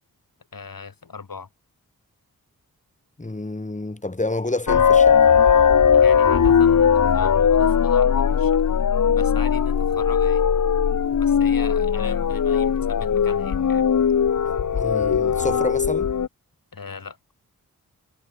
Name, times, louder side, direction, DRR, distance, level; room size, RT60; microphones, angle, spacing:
voice 1, 0.5-1.5 5.9-8.6 9.2-10.4 11.1-13.9 16.7-17.2, left 5 dB, 75° left, 7.2 m, -38 dB
voice 2, 3.2-5.2 14.4-16.1, left 2 dB, 20° left, 1.8 m, -29 dB
sound 1, 4.7-16.3, left 7 dB, 55° left, 0.8 m, -18 dB
cardioid pair, 40°, 35 cm